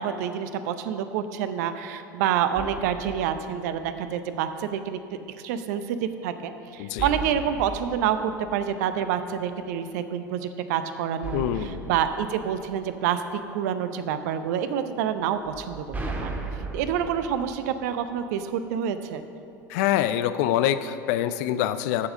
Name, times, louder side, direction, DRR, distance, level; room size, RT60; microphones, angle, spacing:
voice 1, 0.0-5.0 5.4-15.8 16.2-16.3 16.7-19.2, right 8 dB, 60° right, 10 dB, 0.7 m, -28 dB
sound 1, 2.5-4.4 7.0-9.4 11.2-13.5 15.4-18.5, right 3 dB, 15° right, 1.6 m, -37 dB
voice 2, 6.8-7.1 11.3-11.9 19.7-22.1, left 11 dB, 55° left, 12 dB, 0.5 m, -25 dB
8.5 x 7.2 x 7.3 m, 2.7 s
figure-of-eight pair, 75°, 10 cm